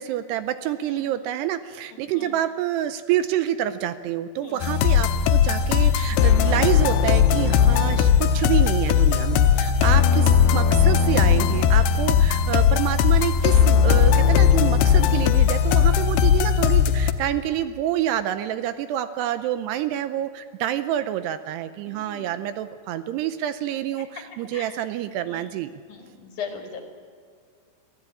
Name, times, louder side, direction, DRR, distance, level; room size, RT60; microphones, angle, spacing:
voice 1, 0.0-25.7, right 12 dB, 80° right, 11 dB, 2.6 m, -27 dB
voice 2, 1.9-2.3 4.4-4.6 21.9-22.3 24.5-24.7 25.3-25.5 25.9-26.8, left 6 dB, 50° left, 3 dB, 2.9 m, -38 dB
sound 1, 4.6-17.1, left 8 dB, 75° left, 2.6 m, -18 dB
23.5 x 15.0 x 8.5 m, 2.1 s
omnidirectional pair, 5.1 m